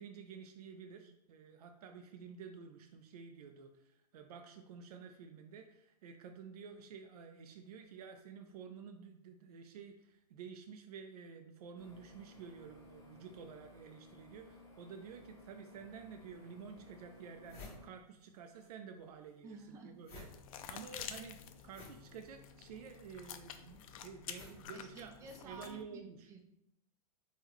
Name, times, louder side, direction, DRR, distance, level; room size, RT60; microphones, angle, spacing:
voice 1, 0.0-25.1 25.4-26.3, right 6 dB, 80° right, 6 dB, 0.4 m, -51 dB
sound 1, 11.8-17.9, left 2 dB, 15° left, 0.8 m, -58 dB
sound 2, 16.2-16.3 16.8-16.9 17.1-18.7 19.0-25.5, left 3 dB, 30° left, 1.1 m, -56 dB
voice 2, 19.4-19.9 20.6-20.8 24.7-26.4, right 3 dB, 15° right, 2 dB, 0.4 m, -53 dB
sound 3, 20.2-25.8, left 8 dB, 60° left, 0.4 m, -50 dB
3.7 x 2.2 x 3.1 m, 0.82 s
hypercardioid pair, 140°, 19 cm